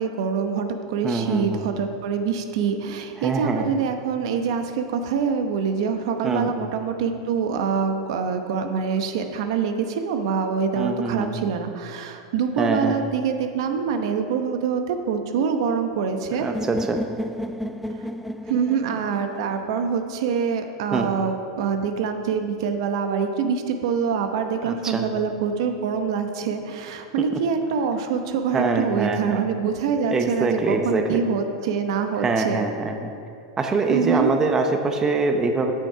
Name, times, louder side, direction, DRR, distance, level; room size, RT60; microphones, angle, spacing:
voice 1, 0.0-16.5 18.5-32.7 33.9-34.3, right 6 dB, 65° right, 6 dB, 0.9 m, -25 dB
voice 2, 1.0-1.6 3.2-3.7 6.2-6.5 10.7-11.3 12.6-13.0 16.4-17.0 20.9-21.1 24.6-25.0 27.3-27.4 28.5-29.4 30.1-31.2 32.2-33.1 33.6-35.7, right 3 dB, 20° right, 5 dB, 0.7 m, -24 dB
sound 1, 16.5-20.5, equal, ahead, 0.3 m, -33 dB
8.4 x 6.5 x 5.6 m, 2.4 s
hypercardioid pair, 120°, 3 cm